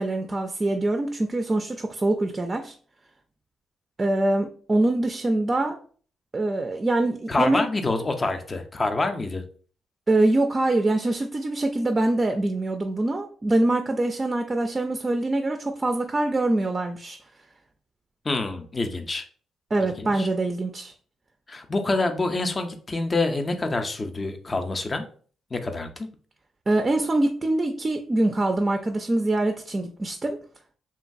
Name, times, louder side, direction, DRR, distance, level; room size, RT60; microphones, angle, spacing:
voice 1, 0.0-2.7 4.0-5.8 6.3-7.6 10.1-17.2 19.7-20.9 26.7-30.4, right 2 dB, 30° right, 5 dB, 0.4 m, -24 dB
voice 2, 7.3-9.4 18.2-19.2 20.0-20.3 21.5-25.1 25.5-26.1, left 3 dB, 30° left, 6 dB, 0.4 m, -26 dB
2.9 x 2.3 x 2.6 m, 0.44 s
cardioid pair, 70°, 0 cm